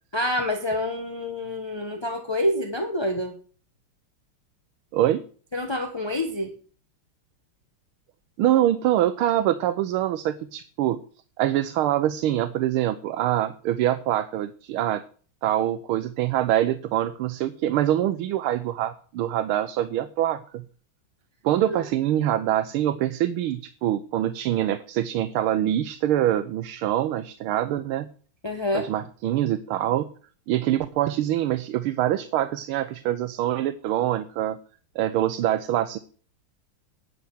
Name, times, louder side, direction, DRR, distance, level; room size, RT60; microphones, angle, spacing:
voice 1, 0.1-3.4 5.5-6.5 28.4-28.9, left 1 dB, 20° left, 3 dB, 0.7 m, -27 dB
voice 2, 4.9-5.2 8.4-11.0 11.4-15.0 15.4-20.7 21.4-28.1 28.7-30.1 30.5-34.6 34.9-36.0, right 12 dB, 80° right, 10 dB, 1.5 m, -24 dB
10.5 x 6.8 x 7.7 m, 0.43 s
omnidirectional pair, 2.4 m